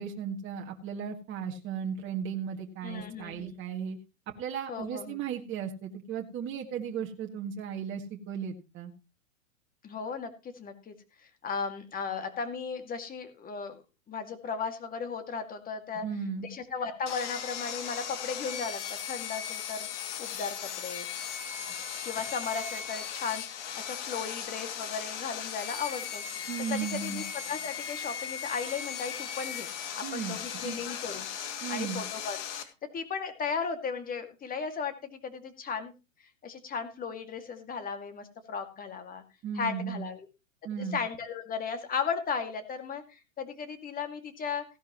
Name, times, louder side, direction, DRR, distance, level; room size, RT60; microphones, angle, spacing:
voice 1, 0.0-4.0 4.4-8.9 15.9-16.5 26.5-27.2 30.0-30.4 30.6-30.8 31.6-32.0 39.4-40.1 40.6-41.0, right 7 dB, 30° right, 1 dB, 2.0 m, -35 dB
voice 2, 2.8-3.5 4.7-5.2 9.8-10.9 11.4-13.8 14.1-16.0 16.4-19.9 20.2-21.1 22.0-26.2 26.7-29.7 30.0-31.3 31.7-35.9 36.4-39.2 39.5-40.3 40.8-44.6, left 6 dB, 20° left, 7 dB, 2.3 m, -36 dB
Sawing, 17.1-32.6, left 8 dB, 60° left, 2.6 m, -37 dB
16.5 x 11.0 x 3.1 m, 0.30 s
hypercardioid pair, 115°, 40 cm